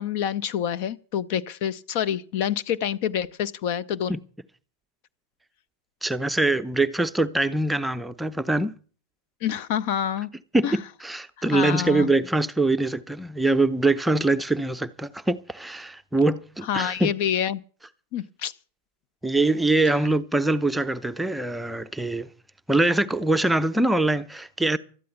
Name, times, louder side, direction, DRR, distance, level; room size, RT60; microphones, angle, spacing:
voice 1, 0.0-4.1 9.4-10.3 10.6-10.8 11.4-12.1 16.7-17.6 18.1-18.5, left 9 dB, 45° left, 0.7 m, -27 dB
voice 2, 6.0-8.7 10.5-10.8 11.0-17.1 19.2-22.3 22.7-24.8, right 2 dB, 5° right, 0.7 m, -23 dB
13.0 x 9.3 x 8.2 m
figure-of-eight pair, 90°, 0 cm